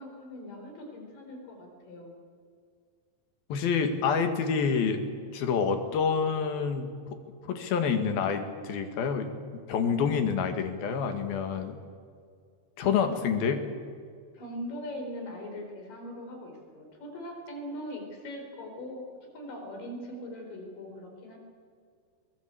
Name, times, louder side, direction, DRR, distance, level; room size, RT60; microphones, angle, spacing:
voice 1, 0.0-2.1 14.3-21.4, left 1 dB, 65° left, 3 dB, 5.9 m, -41 dB
voice 2, 3.5-5.0 5.3-6.9 7.5-9.3 9.7-11.8 12.8-13.7, left 6 dB, 80° left, 7 dB, 3.7 m, -27 dB
22.5 x 19.5 x 8.4 m, 2.2 s
omnidirectional pair, 4.2 m